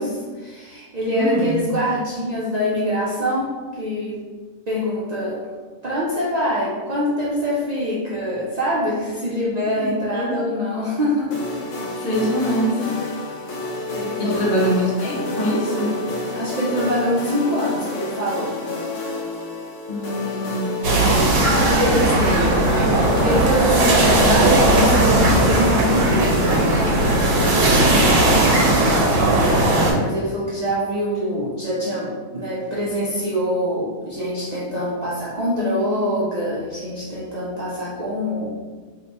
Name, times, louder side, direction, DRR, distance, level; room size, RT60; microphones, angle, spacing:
voice 1, 0.0-4.2 4.7-5.4 5.8-11.5 13.9-14.6 16.3-18.6 20.8-21.4 21.8-22.0 23.2-26.4 28.4-28.8 30.0-38.5, equal, 55° right, -7 dB, 0.5 m, -24 dB
voice 2, 1.1-1.6 9.8-10.4 12.0-12.9 14.2-16.0 19.9-22.6 27.5-28.2 29.4-29.8, equal, 55° left, -4 dB, 1.0 m, -24 dB
sound 1, 11.3-29.9, left 2 dB, 80° left, 1.0 m, -29 dB
sound 2, 20.8-29.9, right 2 dB, 90° right, 1.1 m, -17 dB
2.7 x 2.3 x 3.9 m, 1.4 s
omnidirectional pair, 1.3 m